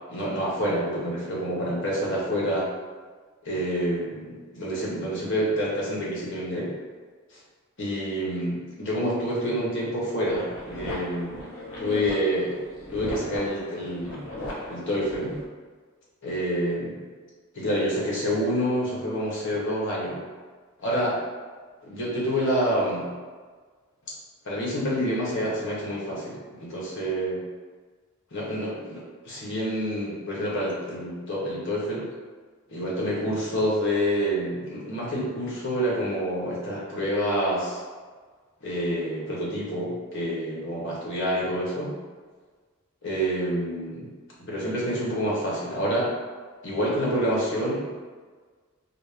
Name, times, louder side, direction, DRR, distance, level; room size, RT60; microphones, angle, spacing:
voice 1, 0.1-2.7 3.4-6.7 7.8-11.4 11.8-12.6 12.9-14.2 14.7-15.4 16.2-17.0 17.5-20.2 20.8-21.2 21.8-23.1 24.4-27.4 28.3-32.1 32.7-37.8 38.6-41.9 43.0-44.1 44.4-46.1 46.6-47.9, equal, 60° left, -5 dB, 1.1 m, -27 dB
sound 1, 10.2-15.4, left 1 dB, 80° left, 0.8 m, -37 dB
4.2 x 2.1 x 3.4 m, 1.5 s
head